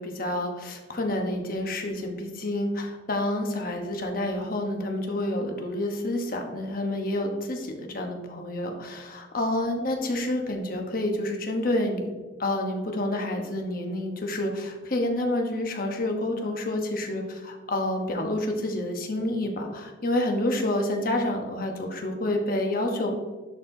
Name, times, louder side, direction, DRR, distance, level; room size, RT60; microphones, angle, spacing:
voice 1, 0.0-12.1 12.4-23.1, left 1 dB, 50° left, 3 dB, 1.0 m, -28 dB
10.5 x 4.4 x 2.7 m, 1.3 s
head